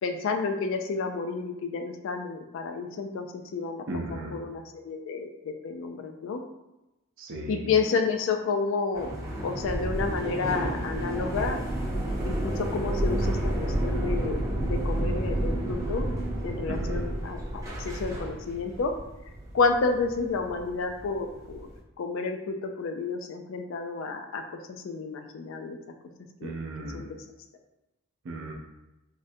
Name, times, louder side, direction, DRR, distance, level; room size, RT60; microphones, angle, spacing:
voice 1, 0.0-6.4 7.5-9.1 9.4-11.6 12.2-16.1 16.4-18.9 19.5-21.7 22.0-25.8 26.4-26.5 26.9-27.2, left 4 dB, 60° left, 6 dB, 0.3 m, -30 dB
voice 2, 3.9-4.3 7.2-7.7 16.7-17.1 26.4-27.1 28.2-28.5, right 2 dB, 60° right, 1 dB, 0.5 m, -36 dB
sound 1, 8.9-21.7, right 1 dB, 15° right, 0.6 m, -30 dB
3.6 x 2.1 x 2.6 m, 0.99 s
head